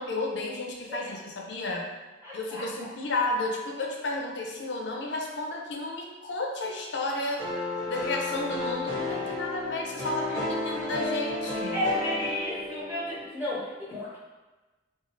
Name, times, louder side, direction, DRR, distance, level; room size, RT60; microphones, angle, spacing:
voice 1, 0.0-1.9 2.3-7.4 7.9-11.8, left 2 dB, 65° left, 0 dB, 0.5 m, -32 dB
voice 2, 2.2-2.6 11.7-14.2, left 1 dB, 10° right, -10 dB, 1.0 m, -32 dB
sound 1, 7.4-13.3, left 2 dB, 55° right, 1.1 m, -33 dB
2.6 x 2.4 x 3.0 m, 1.2 s
head